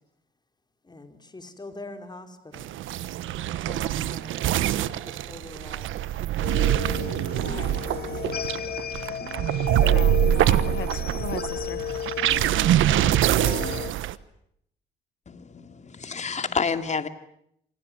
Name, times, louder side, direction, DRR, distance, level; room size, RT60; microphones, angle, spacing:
voice 1, 0.9-2.7 3.5-5.9 7.0-8.5, left 2 dB, 20° left, 7 dB, 4.7 m, -44 dB
sound 1, 2.5-14.2, right 12 dB, 85° right, 1.2 m, -24 dB
sound 2, 6.4-13.9, left 8 dB, 50° left, 2.0 m, -34 dB
voice 2, 9.8-11.8, left 11 dB, 70° left, 17 dB, 1.2 m, -37 dB
voice 3, 15.3-17.1, left 5 dB, 35° left, 10 dB, 2.5 m, -29 dB
28.0 x 25.5 x 7.8 m, 0.73 s
cardioid pair, 90°, 20 cm